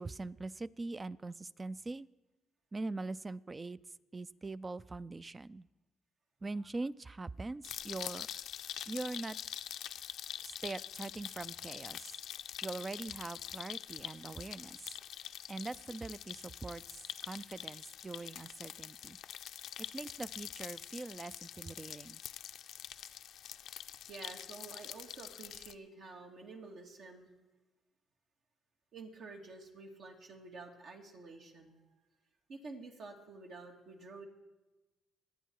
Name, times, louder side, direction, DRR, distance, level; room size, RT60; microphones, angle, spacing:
voice 1, 0.0-2.1 2.7-3.8 4.1-5.7 6.4-8.3 8.9-9.4 10.4-12.2 12.6-15.0 15.5-19.2 19.9-22.2, right 3 dB, 25° right, 17 dB, 0.4 m, -42 dB
sound 1, 7.6-25.7, left 10 dB, 75° left, 0.5 m, -45 dB
voice 2, 24.1-27.3 28.9-31.8 32.5-34.3, right 3 dB, 70° right, 2 dB, 2.4 m, -50 dB
25.5 x 9.2 x 4.7 m, 1.1 s
cardioid pair, 90°, 0 cm